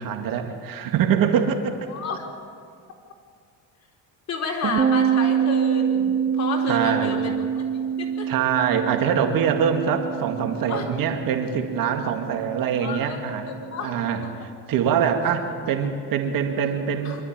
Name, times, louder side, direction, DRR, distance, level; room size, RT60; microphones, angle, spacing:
voice 1, 0.0-1.9 4.7-4.8 6.7-7.2 8.3-13.4 13.8-17.2, right 7 dB, 60° right, 5 dB, 2.2 m, -24 dB
voice 2, 1.9-2.2 4.3-7.3 7.7-8.3 10.7-10.8 12.8-13.2 13.5-13.9 14.2-14.3 17.0-17.2, left 4 dB, 45° left, 0 dB, 4.3 m, -31 dB
sound 1, 4.8-14.2, right 8 dB, 25° right, 0.8 m, -26 dB
25.0 x 12.5 x 8.9 m, 2.3 s
cardioid pair, 105°, 38 cm